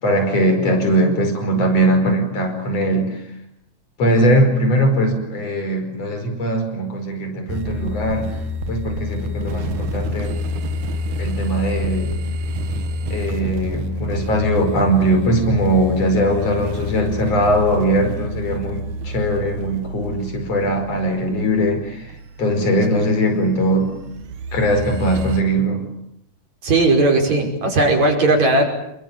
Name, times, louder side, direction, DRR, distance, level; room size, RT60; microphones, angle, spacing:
voice 1, 0.0-3.2 4.0-8.3 8.7-10.3 11.2-12.1 13.1-22.1 22.4-23.9 24.5-25.8, right 1 dB, 55° left, 6 dB, 6.2 m, -20 dB
sound 1, 7.5-25.4, left 1 dB, 90° right, 3.0 m, -28 dB
voice 2, 26.6-28.6, right 2 dB, 65° right, 2 dB, 6.8 m, -16 dB
28.5 x 23.0 x 9.0 m, 0.78 s
omnidirectional pair, 3.4 m